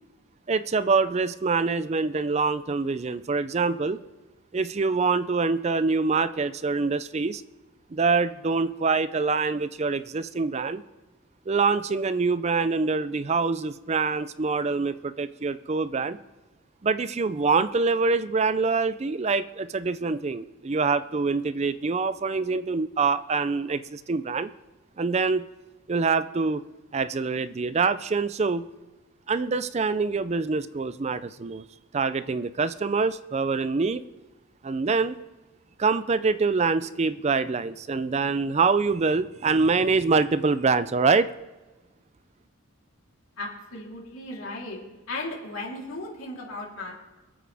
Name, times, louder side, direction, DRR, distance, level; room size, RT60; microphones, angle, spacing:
voice 1, 0.5-4.0 4.5-7.4 7.9-10.8 11.5-16.2 16.8-24.5 25.0-25.4 25.9-26.6 26.9-28.6 29.3-31.7 31.9-34.0 34.6-35.2 35.8-41.3, right 4 dB, 30° right, 14 dB, 0.4 m, -25 dB
voice 2, 43.4-44.8 45.1-46.9, left 2 dB, 80° left, -3 dB, 3.6 m, -36 dB
26.0 x 8.7 x 3.5 m, 1.1 s
head